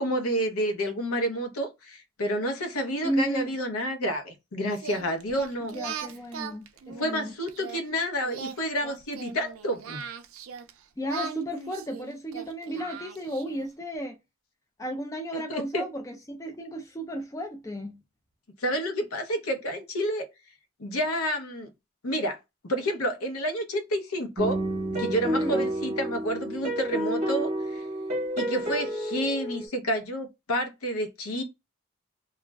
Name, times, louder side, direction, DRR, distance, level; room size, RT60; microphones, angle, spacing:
voice 1, 0.0-5.7 7.0-10.0 15.3-15.8 18.6-20.3 20.8-21.7 22.0-22.4 22.6-24.6 24.9-27.8 28.4-31.4, equal, 85° left, 0.7 m, -29 dB
voice 2, 3.0-3.6 5.6-7.3 11.0-14.2 14.8-18.0 25.3-25.7, equal, 15° left, 0.3 m, -33 dB
Singing, 4.8-7.8 8.2-10.7 11.1-13.7, right 6 dB, 75° right, 0.4 m, -39 dB
sound 1, 24.4-29.7, right 1 dB, 30° right, 0.8 m, -30 dB
2.3 x 2.0 x 3.3 m
head